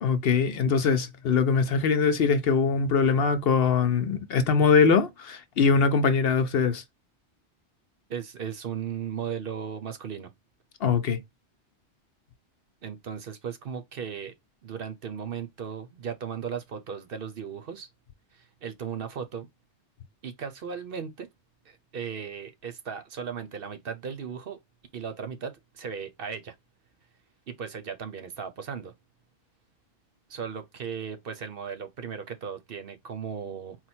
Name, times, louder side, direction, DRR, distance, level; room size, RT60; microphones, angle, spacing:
voice 1, 0.0-6.8 10.8-11.2, left 5 dB, 60° left, 0.8 m, -22 dB
voice 2, 8.1-10.3 12.8-14.3 14.6-17.9 18.3-19.5 20.2-21.3 21.6-24.6 24.9-26.5 27.5-28.9 30.3-33.8, right 7 dB, 60° right, 0.8 m, -36 dB
4.4 x 2.2 x 4.2 m
omnidirectional pair, 1.2 m